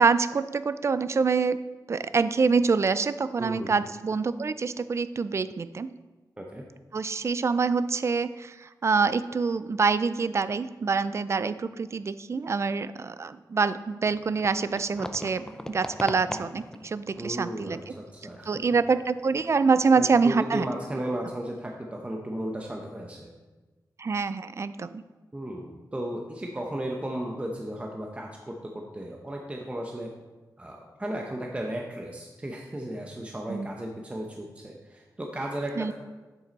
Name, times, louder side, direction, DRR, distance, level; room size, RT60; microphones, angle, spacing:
voice 1, 0.0-1.6 1.9-5.9 6.9-17.8 18.5-20.7 24.0-25.0 33.5-33.7 35.8-35.9, right 4 dB, 40° right, 13 dB, 0.4 m, -26 dB
voice 2, 3.4-3.7 6.4-6.6 17.2-18.6 19.9-23.3 25.3-30.1 30.6-35.9, right 1 dB, 20° right, 0 dB, 0.8 m, -35 dB
sound 1, 14.1-20.8, left 1 dB, 10° left, 0.5 m, -42 dB
7.9 x 7.5 x 4.1 m, 1.2 s
wide cardioid pair, 105°, 7 cm